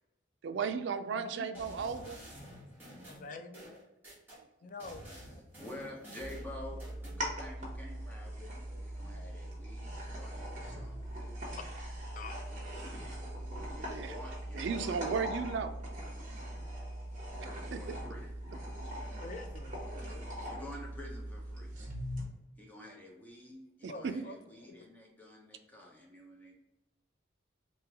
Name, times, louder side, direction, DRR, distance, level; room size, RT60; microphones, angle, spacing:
voice 1, 0.4-2.2 13.9-14.1 14.5-15.7 17.7-18.0 23.8-24.1, right 5 dB, 65° right, 8 dB, 0.3 m, -35 dB
voice 2, 1.2-1.8 3.2-3.7 4.6-5.1 11.6-11.7 12.1-12.5 19.2-20.2 23.9-24.4 24.6-24.9, left 3 dB, 40° left, 8 dB, 0.3 m, -46 dB
sound 1, 1.5-4.4 4.8-7.2, equal, 10° right, 1.2 m, -50 dB
voice 3, 5.6-11.4 12.5-13.0 13.6-15.4 16.0-16.3 17.8-18.3 20.5-21.7 22.6-26.6, left 1 dB, 10° left, -2 dB, 0.7 m, -49 dB
sound 2, 6.2-22.2, equal, 40° right, 1.0 m, -41 dB
3.1 x 2.9 x 3.4 m, 0.97 s
head